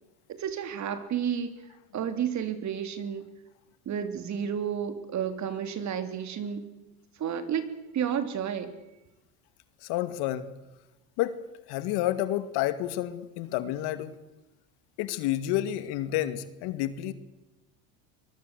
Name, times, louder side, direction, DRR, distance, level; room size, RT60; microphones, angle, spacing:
voice 1, 0.3-1.5 1.9-3.3 3.8-6.7 7.2-7.6 7.9-8.7, right 8 dB, 40° right, 10 dB, 3.3 m, -31 dB
voice 2, 9.8-10.5 11.2-11.4 11.7-14.2 15.0-17.1, left 13 dB, 65° left, 12 dB, 2.4 m, -30 dB
24.0 x 21.5 x 8.3 m, 0.99 s
supercardioid pair, 120°, 42 cm